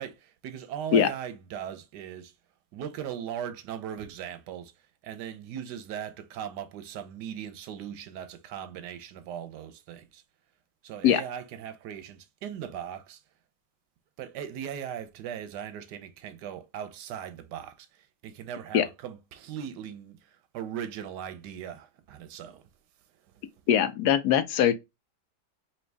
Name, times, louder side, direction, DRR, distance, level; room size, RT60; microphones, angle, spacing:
voice 1, 0.0-2.3 2.7-4.7 5.0-10.2 10.8-13.2 14.2-22.6, right 9 dB, 85° right, 1.3 m, -39 dB
voice 2, 23.7-24.7, left 9 dB, 75° left, 1.1 m, -21 dB
4.5 x 2.6 x 3.3 m
omnidirectional pair, 1.8 m